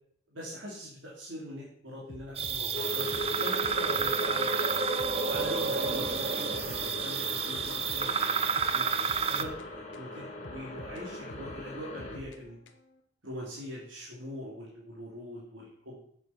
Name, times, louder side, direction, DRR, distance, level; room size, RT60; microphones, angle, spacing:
voice 1, 0.3-4.7 5.2-8.9 9.2-12.6 13.2-16.0, equal, 80° right, -5 dB, 3.1 m, -42 dB
sound 1, 2.1-4.2 4.5-4.6 5.0-6.9 7.2-10.1 10.4-13.0, left 2 dB, 70° left, 0.9 m, -49 dB
sound 2, 2.4-9.4, right 6 dB, 30° right, 0.6 m, -30 dB
sound 3, 2.7-12.2, left 1 dB, 35° left, 2.2 m, -39 dB
7.7 x 7.4 x 5.9 m, 0.67 s
head